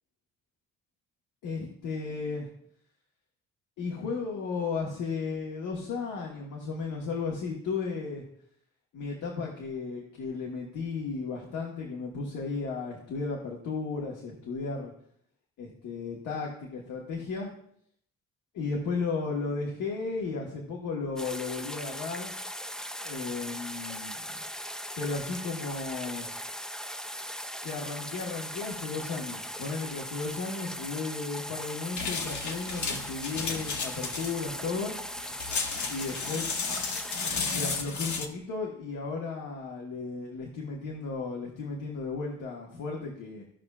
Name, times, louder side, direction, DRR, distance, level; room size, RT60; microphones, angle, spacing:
voice 1, 1.4-2.5 3.8-8.2 8.9-14.9 15.6-17.5 18.5-22.3 23.0-24.4 25.0-26.3 27.6-35.0 35.8-36.5 37.5-43.4, left 4 dB, 90° left, -2 dB, 1.5 m, -34 dB
sound 1, 21.2-37.8, equal, ahead, 0.5 m, -39 dB
sound 2, 31.9-38.3, left 5 dB, 70° left, 1.3 m, -33 dB
15.5 x 5.4 x 2.4 m, 0.66 s
cardioid pair, 90°, 30 cm